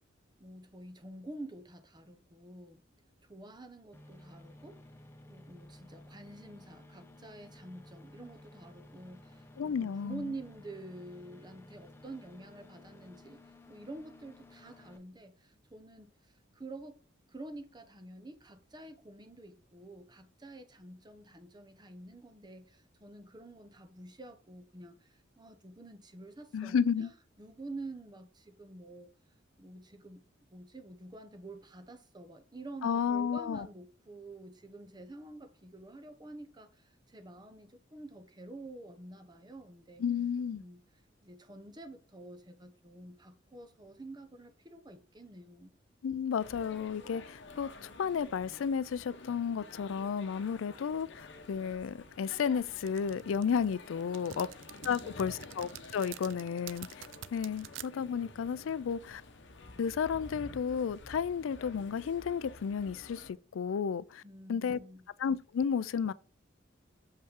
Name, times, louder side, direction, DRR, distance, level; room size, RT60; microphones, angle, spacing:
voice 1, 0.4-2.8 3.3-4.8 5.3-13.4 13.7-17.0 17.3-27.1 27.4-29.1 29.6-30.2 30.5-40.0 40.6-40.8 41.2-45.7 54.3-55.4 64.2-65.1, right 2 dB, 20° right, 0.9 m, -48 dB
sound 1, 3.9-15.0, left 1 dB, 10° left, 0.9 m, -55 dB
voice 2, 9.6-10.3 26.5-27.1 32.8-33.7 40.0-40.6 46.0-54.5 54.8-57.1 57.3-59.2 59.8-64.2 64.5-64.8 65.2-66.1, left 7 dB, 85° left, 0.4 m, -32 dB
sound 2, 46.4-63.3, left 3 dB, 65° left, 0.9 m, -50 dB
sound 3, 52.9-57.9, right 12 dB, 70° right, 0.4 m, -47 dB
6.8 x 5.4 x 3.6 m
head